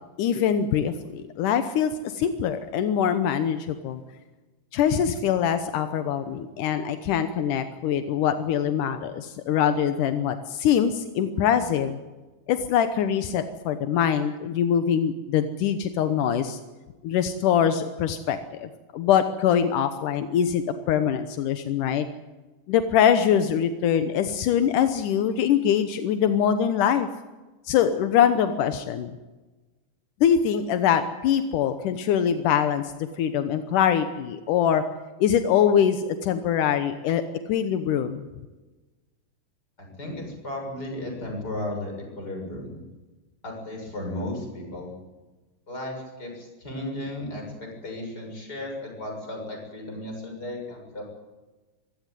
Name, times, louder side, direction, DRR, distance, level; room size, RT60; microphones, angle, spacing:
voice 1, 0.2-4.0 4.7-12.0 12.5-16.6 17.0-22.1 22.7-27.1 27.7-29.1 30.2-32.9 33.2-34.8 35.2-37.2 37.5-38.3, left 8 dB, 85° left, 9 dB, 2.6 m, -23 dB
voice 2, 40.0-42.8 43.4-44.9 45.7-47.4 47.8-51.0, left 1 dB, 30° left, 1 dB, 7.4 m, -34 dB
25.0 x 16.0 x 9.3 m, 1.2 s
omnidirectional pair, 3.6 m